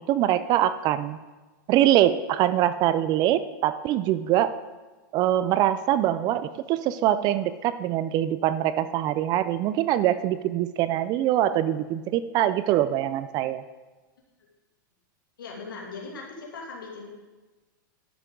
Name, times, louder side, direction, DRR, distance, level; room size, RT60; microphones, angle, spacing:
voice 1, 0.1-1.2 1.7-4.5 5.1-13.6, right 12 dB, 40° right, 14 dB, 0.5 m, -23 dB
voice 2, 15.4-17.1, left 4 dB, 85° left, -2 dB, 2.7 m, -39 dB
12.0 x 11.0 x 3.8 m, 1.2 s
hypercardioid pair, 120°, 11 cm